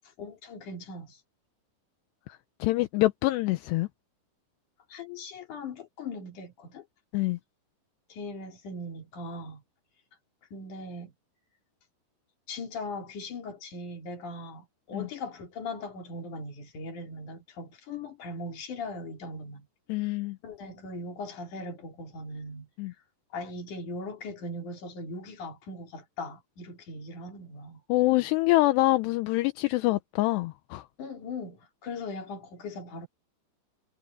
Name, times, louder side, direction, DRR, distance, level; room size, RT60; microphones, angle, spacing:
voice 1, 0.2-1.2 4.9-6.9 8.1-9.6 10.5-11.1 12.5-19.7 19.9-20.1 20.4-22.7 23.3-27.8 31.0-33.1, left 2 dB, 50° left, 4.3 m, -39 dB
voice 2, 2.6-3.9 7.1-7.4 14.9-15.1 19.9-20.4 22.8-22.9 27.9-30.8, left 19 dB, 80° left, 2.8 m, -25 dB
omnidirectional pair, 4.9 m